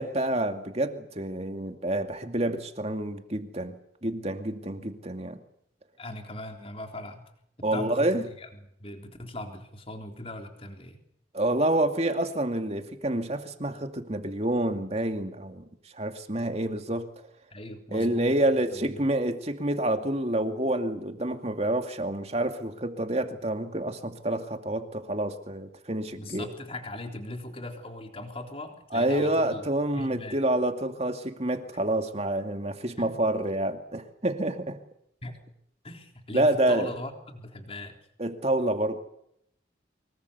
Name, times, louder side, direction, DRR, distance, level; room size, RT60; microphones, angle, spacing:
voice 1, 0.0-3.7 4.0-5.4 7.6-8.2 11.3-15.6 15.9-17.1 17.9-26.5 28.9-34.8 36.3-36.9 38.2-39.0, right 1 dB, 35° right, 6 dB, 2.4 m, -28 dB
voice 2, 6.0-7.2 7.6-8.5 8.8-11.0 17.5-18.4 18.7-19.1 26.1-29.6 30.0-30.4 33.0-33.2 35.2-35.4 35.8-38.0, left 1 dB, 30° left, 4 dB, 3.7 m, -39 dB
25.0 x 22.5 x 7.0 m, 0.71 s
head